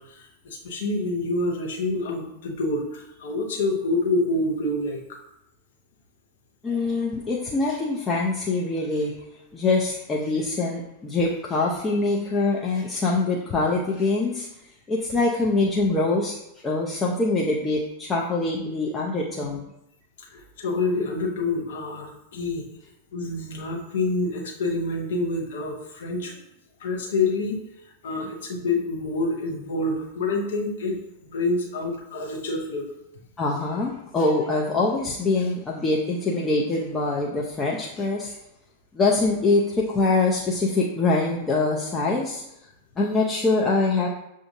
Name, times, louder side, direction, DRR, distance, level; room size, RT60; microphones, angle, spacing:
voice 1, 0.0-5.0 20.2-22.7 23.1-26.4 26.8-27.6 28.0-31.0 31.2-32.9, left 2 dB, 60° left, 0 dB, 0.8 m, -27 dB
voice 2, 6.6-9.1 9.5-14.5 14.9-19.6 33.4-38.3 38.9-42.4 43.0-44.1, left 3 dB, 20° left, -3 dB, 0.5 m, -24 dB
6.7 x 2.5 x 2.6 m, 0.83 s
figure-of-eight pair, 90°, 0 cm